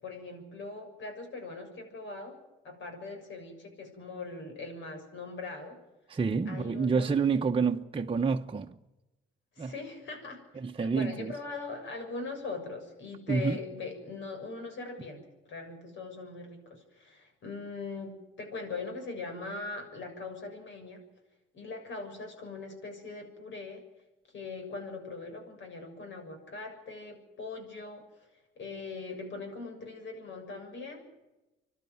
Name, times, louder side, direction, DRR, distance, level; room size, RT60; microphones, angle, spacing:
voice 1, 0.0-2.4 2.6-5.8 6.5-7.4 9.6-10.4 10.8-21.0 21.5-23.8 24.3-28.0 28.6-31.1, left 3 dB, 70° left, 7.0 m, -41 dB
voice 2, 6.1-8.8 9.6-9.7 10.6-11.3 13.3-13.6, right 5 dB, 25° right, 1.0 m, -28 dB
27.5 x 12.0 x 9.4 m
cardioid pair, 90°, 20 cm